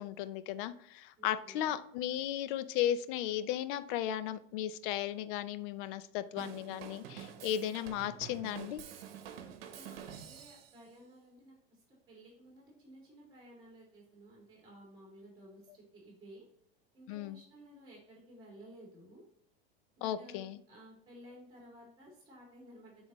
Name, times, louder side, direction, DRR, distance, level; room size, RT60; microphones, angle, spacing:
voice 1, 0.0-8.8 17.1-17.4 20.0-20.6, left 11 dB, 60° left, 13 dB, 0.6 m, -35 dB
voice 2, 1.2-1.8 9.7-16.5 16.9-19.2 20.0-20.4 20.7-23.1, right 1 dB, 15° right, -4 dB, 2.5 m, -55 dB
Drum kit / Drum, 6.4-10.8, right 9 dB, 75° right, 0.9 m, -48 dB
7.9 x 3.9 x 3.0 m, 0.69 s
supercardioid pair, 115°, 29 cm